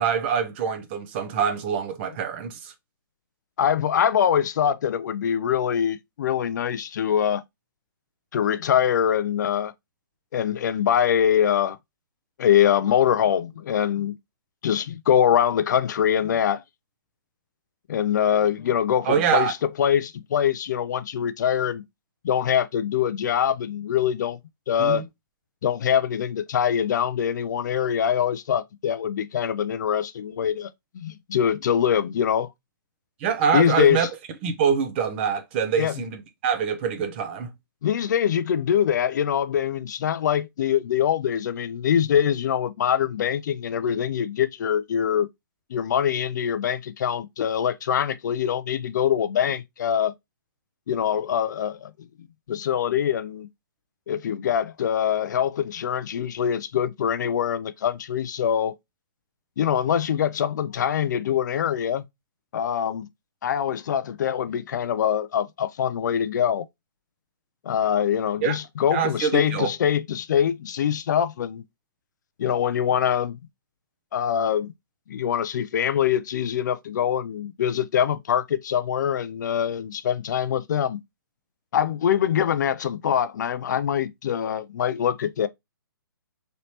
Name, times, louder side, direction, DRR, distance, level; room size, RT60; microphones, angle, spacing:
voice 1, 0.0-2.7 19.1-19.5 24.8-25.0 33.2-34.1 34.4-37.5 68.4-68.6 68.9-69.7, right 7 dB, 30° right, 0.6 m, -25 dB
voice 2, 3.6-7.4 8.3-9.7 10.3-11.8 12.4-14.1 14.6-16.6 17.9-21.8 22.2-24.4 24.7-25.0 25.6-30.7 30.9-32.5 33.5-34.1 35.8-35.9 37.8-45.3 45.7-50.1 50.9-51.9 52.5-53.5 54.1-58.8 59.6-62.0 62.5-63.1 63.4-66.6 67.7-71.6 72.4-73.4 74.1-74.7 75.1-81.0 81.7-85.5, left 9 dB, 55° left, 0.4 m, -23 dB
3.2 x 2.9 x 2.8 m
hypercardioid pair, 150°, 12 cm